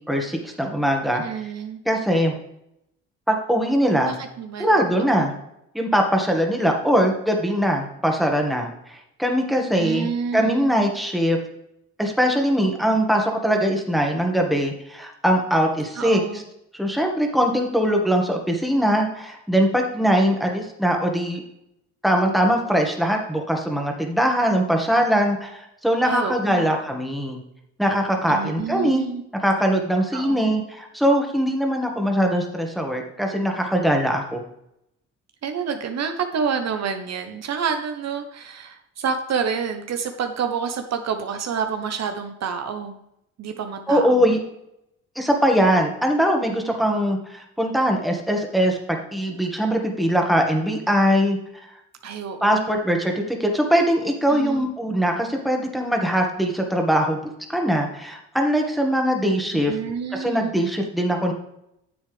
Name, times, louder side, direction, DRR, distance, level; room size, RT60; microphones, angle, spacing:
voice 1, 0.1-1.2 1.9-2.3 3.3-4.1 4.6-5.3 5.7-10.1 10.3-11.4 12.0-16.2 16.7-21.4 22.0-27.4 27.8-29.1 29.3-34.4 43.9-44.4 45.2-51.4 52.4-59.7 60.1-61.3, equal, ahead, 2 dB, 1.9 m, -21 dB
voice 2, 1.1-1.8 4.0-4.9 5.2-5.3 9.7-10.9 16.0-16.4 26.0-26.7 28.3-29.2 30.1-30.6 35.4-43.0 43.4-44.3 52.0-52.8 54.3-54.7 59.5-60.6, right 6 dB, 60° right, 6 dB, 1.0 m, -28 dB
9.8 x 7.3 x 3.4 m, 0.81 s
cardioid pair, 90°, 30 cm